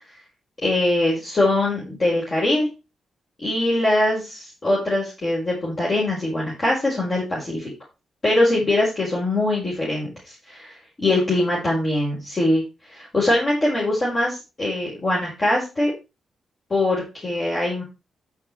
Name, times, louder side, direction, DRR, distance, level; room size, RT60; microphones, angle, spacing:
voice 1, 0.6-2.7 3.4-7.7 8.2-12.6 12.9-15.9 16.7-17.8, left 1 dB, 35° left, -5 dB, 5.3 m, -22 dB
10.5 x 6.1 x 4.9 m, 0.28 s
cardioid pair, 100°, 0 cm